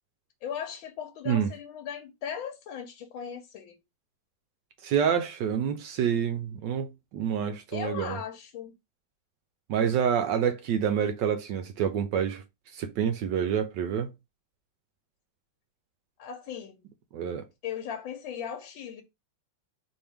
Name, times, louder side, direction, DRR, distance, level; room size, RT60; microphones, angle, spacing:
voice 1, 0.4-3.8 7.7-8.7 16.2-16.8 17.6-19.0, left 8 dB, 85° left, 1.5 m, -37 dB
voice 2, 4.8-8.2 9.7-12.4 12.7-14.1 17.1-17.4, right 8 dB, 75° right, 1.2 m, -27 dB
4.4 x 3.2 x 3.5 m
omnidirectional pair, 2.1 m